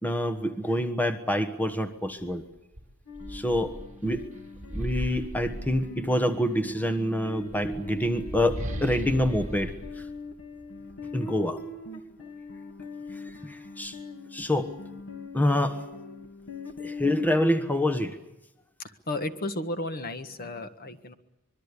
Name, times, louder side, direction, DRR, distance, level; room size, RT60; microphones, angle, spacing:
voice 1, 0.0-2.4 3.3-3.8 4.0-4.3 4.7-10.1 11.1-11.6 13.1-14.0 14.3-14.7 15.3-15.9 16.8-18.2, left 1 dB, 10° left, 8 dB, 1.3 m, -27 dB
sound 1, 2.2-2.3 2.7-6.4 7.3-10.9, equal, 35° right, 4.0 m, -38 dB
sound 2, 3.1-17.4, left 2 dB, 70° left, 2.8 m, -41 dB
voice 2, 18.8-21.1, left 1 dB, 45° left, 9 dB, 1.6 m, -33 dB
25.0 x 22.5 x 8.3 m, 0.90 s
head